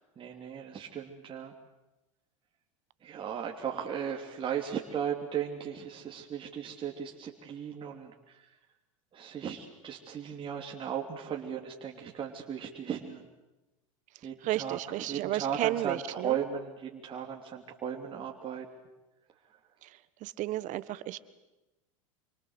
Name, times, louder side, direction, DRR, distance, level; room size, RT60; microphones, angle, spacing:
voice 1, 0.2-1.5 3.0-8.5 9.1-13.3 14.2-18.7, right 8 dB, 30° right, 0 dB, 3.0 m, -36 dB
voice 2, 14.4-16.4 19.8-19.9 20.2-21.2, right 15 dB, 50° right, 15 dB, 1.5 m, -33 dB
27.0 x 24.5 x 8.1 m, 1.0 s
hypercardioid pair, 100°, 17 cm